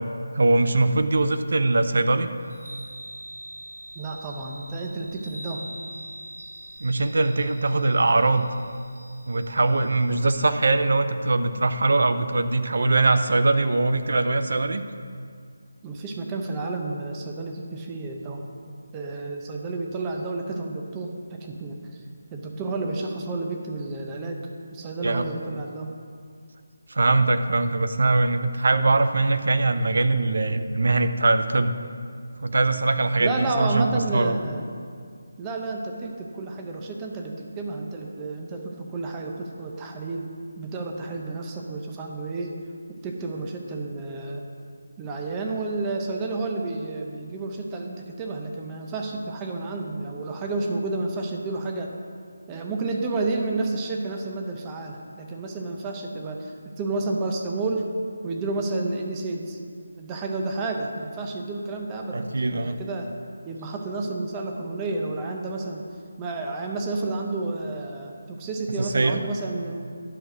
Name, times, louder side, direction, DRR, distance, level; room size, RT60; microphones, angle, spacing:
voice 1, 0.3-2.3 6.8-8.5 9.3-14.8 25.0-25.3 26.9-31.8 32.4-33.9 34.1-34.4 62.1-62.8 68.8-69.2, right 2 dB, 65° right, 10 dB, 0.6 m, -22 dB
Chime, 2.4-10.5, right 1 dB, 80° right, 2.0 m, -43 dB
voice 2, 4.0-5.6 15.8-21.8 22.3-25.9 33.2-34.6 35.4-40.3 40.6-42.5 43.0-44.4 45.0-51.9 52.5-57.9 58.2-59.6 60.0-62.2 62.5-63.1 63.4-65.9 66.2-69.8, right 3 dB, 15° right, 1 dB, 0.7 m, -31 dB
10.5 x 6.4 x 4.9 m, 2.2 s
figure-of-eight pair, 175°, 0 cm